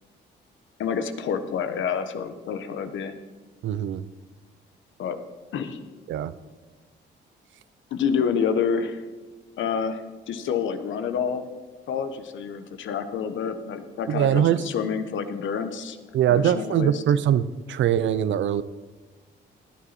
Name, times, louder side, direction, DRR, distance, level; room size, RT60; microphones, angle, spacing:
voice 1, 0.8-3.1 5.0-5.2 5.5-5.8 7.9-9.0 9.6-11.4 11.9-16.0 16.3-17.0, left 6 dB, 75° left, 9 dB, 1.3 m, -28 dB
voice 2, 3.6-4.0 6.1-6.3 14.1-14.6 16.1-18.6, right 10 dB, 70° right, 14 dB, 0.7 m, -22 dB
18.0 x 9.8 x 4.3 m, 1.3 s
cardioid pair, 90°, 20 cm